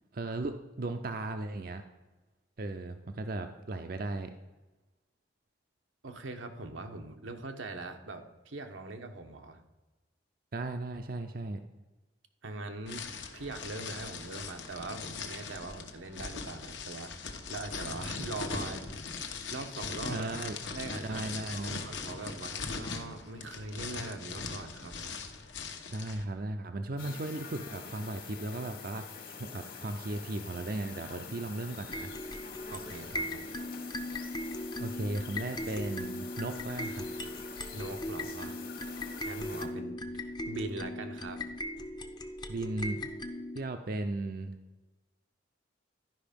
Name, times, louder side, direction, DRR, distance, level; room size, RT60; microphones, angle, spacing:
voice 1, 0.1-1.8 2.6-4.3 10.5-11.6 20.1-20.6 21.0-21.9 25.9-32.1 34.8-37.1 42.5-43.0 43.5-44.6, right 2 dB, 50° right, 7 dB, 0.5 m, -36 dB
voice 2, 6.0-9.6 12.4-13.0 13.3-17.1 17.5-19.0 19.5-20.3 20.7-25.2 32.7-33.5 37.7-38.6 39.2-41.4, right 2 dB, 90° right, 5 dB, 1.1 m, -42 dB
sound 1, 12.9-26.2, left 4 dB, 75° left, 1.1 m, -40 dB
sound 2, 27.0-39.7, left 5 dB, 50° left, 1.4 m, -46 dB
sound 3, 31.9-43.6, left 1 dB, 25° left, 0.6 m, -39 dB
12.0 x 5.4 x 5.2 m, 1.1 s
head